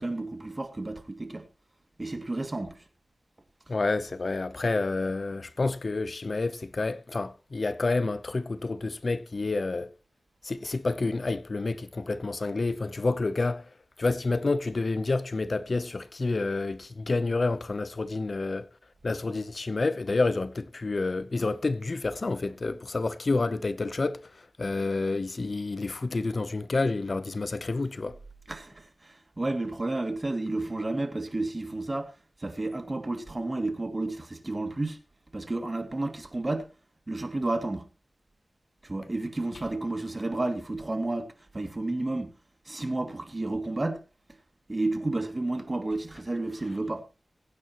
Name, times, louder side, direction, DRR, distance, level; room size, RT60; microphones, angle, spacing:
voice 1, 0.0-1.5 2.0-2.8 28.5-32.1 32.4-35.0 35.3-36.7 37.1-37.9 38.8-42.3 42.7-44.0 44.7-47.0, right 2 dB, 35° right, 2.4 m, -31 dB
voice 2, 3.7-9.9 10.4-13.6 14.0-18.7 19.0-28.2, left 3 dB, 55° left, 0.7 m, -29 dB
22.0 x 9.2 x 3.0 m
wide cardioid pair, 70°, 0 cm